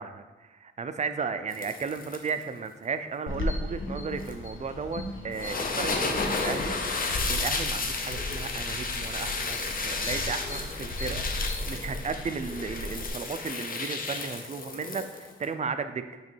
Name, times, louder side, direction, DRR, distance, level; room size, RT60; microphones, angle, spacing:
voice 1, 0.0-7.0 7.3-16.2, right 5 dB, 35° right, 10 dB, 0.3 m, -35 dB
sound 1, 1.5-2.4 4.2-4.3 5.3-15.4, left 4 dB, 45° left, 0.6 m, -32 dB
sound 2, 3.3-13.1, left 1 dB, 75° left, 0.8 m, -36 dB
8.5 x 3.1 x 4.4 m, 1.2 s
wide cardioid pair, 175°, 21 cm